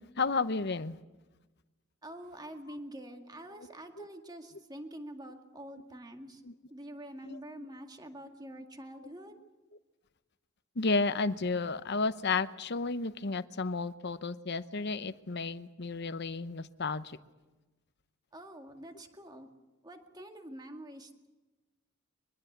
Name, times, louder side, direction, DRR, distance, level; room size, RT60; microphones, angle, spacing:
voice 1, 0.2-1.0 3.6-3.7 4.0-4.1 6.4-6.5 7.2-7.4 10.8-17.2, left 3 dB, 55° left, 13 dB, 0.9 m, -32 dB
voice 2, 2.0-6.4 6.7-9.3 18.3-19.5 19.8-21.3, right 1 dB, 20° right, 5 dB, 2.0 m, -46 dB
23.5 x 21.5 x 8.0 m, 1.1 s
head